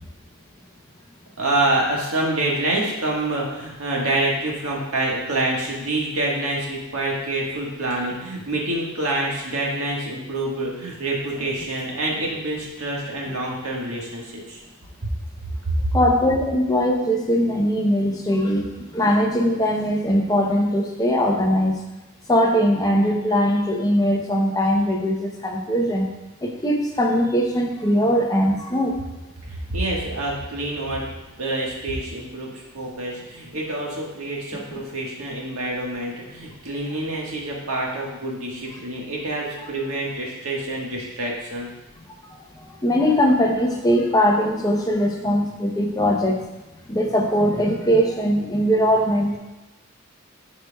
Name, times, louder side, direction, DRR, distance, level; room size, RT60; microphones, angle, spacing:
voice 1, 1.4-14.6 15.0-15.1 15.6-15.9 29.5-31.1 31.4-41.7, right 2 dB, 80° right, -3 dB, 1.5 m, -26 dB
voice 2, 15.9-21.7 22.3-26.1 26.4-29.0 42.8-46.4 46.9-49.4, equal, 15° left, 0 dB, 0.7 m, -20 dB
10.5 x 4.5 x 2.3 m, 1.0 s
head